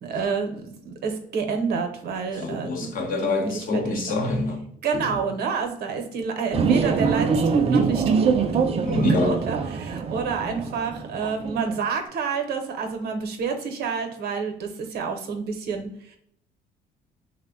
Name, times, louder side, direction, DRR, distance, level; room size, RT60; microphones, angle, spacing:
voice 1, 0.0-2.9 3.2-4.2 4.8-8.1 8.9-16.2, right 5 dB, 70° right, 0.8 m, -29 dB
voice 2, 2.4-4.6 5.0-5.2 8.8-9.4, left 3 dB, 55° left, 0.8 m, -26 dB
sound 1, 6.5-11.9, right 5 dB, 35° right, 0.4 m, -23 dB
3.3 x 2.1 x 3.6 m
cardioid pair, 110°, 17 cm